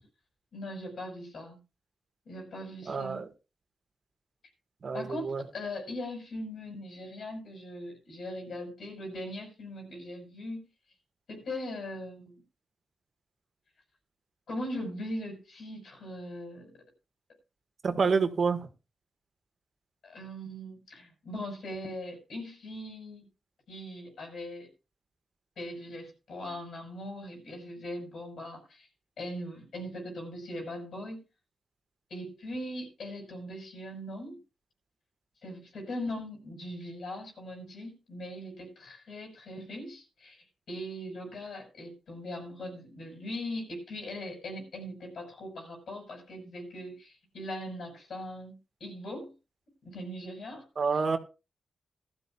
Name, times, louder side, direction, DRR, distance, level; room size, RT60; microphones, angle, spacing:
voice 1, 0.5-1.6 2.3-3.2 4.9-10.7 11.3-12.4 14.5-16.7 20.0-23.3 23.7-24.7 25.6-28.9 29.2-31.2 32.1-34.4 35.4-49.3 49.8-50.6 50.9-51.0, left 1 dB, 75° left, 1 dB, 6.0 m, -40 dB
voice 2, 2.9-3.3 4.8-5.4 17.8-18.7 50.8-51.2, right 5 dB, 60° right, 8 dB, 1.6 m, -28 dB
17.5 x 12.5 x 2.4 m, 0.29 s
cardioid pair, 50°, 0 cm